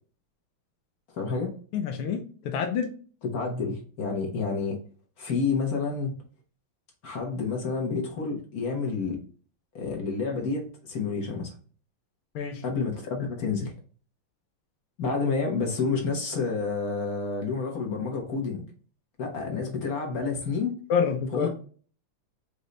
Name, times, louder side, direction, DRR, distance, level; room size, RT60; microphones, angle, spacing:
voice 1, 1.1-1.5 3.3-4.8 5.2-6.2 7.0-9.2 9.7-11.5 12.6-13.7 15.0-18.6 19.2-20.7 21.3-21.5, left 4 dB, 50° left, 1.3 m, -29 dB
voice 2, 1.7-2.9 12.3-12.6 20.9-21.5, left 6 dB, 85° left, 1.6 m, -27 dB
5.2 x 2.7 x 3.2 m
omnidirectional pair, 2.4 m